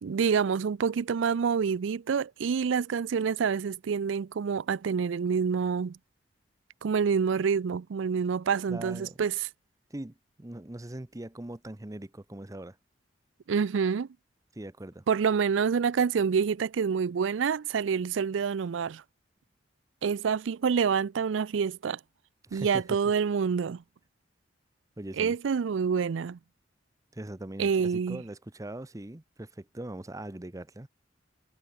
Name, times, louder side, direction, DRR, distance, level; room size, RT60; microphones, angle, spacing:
voice 1, 0.0-6.0 6.8-9.5 13.5-14.1 15.1-19.0 20.0-22.0 22.5-23.8 25.2-26.4 27.6-28.2, right 6 dB, 90° right, 0.4 m, -27 dB
voice 2, 8.7-9.2 9.9-12.8 14.5-15.0 22.4-23.0 25.0-25.3 27.1-30.9, right 1 dB, 20° right, 0.8 m, -41 dB
head